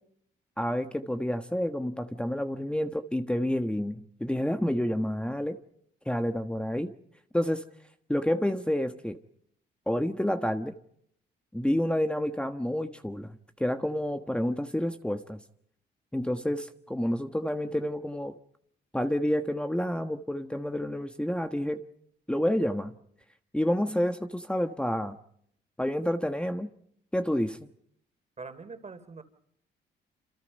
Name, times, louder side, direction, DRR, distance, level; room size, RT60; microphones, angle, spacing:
voice 1, 0.6-5.6 6.0-6.9 7.3-7.6 8.1-9.2 9.9-10.8 11.5-15.4 16.1-18.4 18.9-21.8 22.3-23.0 23.5-25.2 25.8-26.7 27.1-27.6, equal, 5° left, 1.4 m, -29 dB
voice 2, 28.4-29.2, right 4 dB, 35° right, 3.4 m, -43 dB
27.5 x 27.0 x 5.5 m
cardioid pair, 90°, 20 cm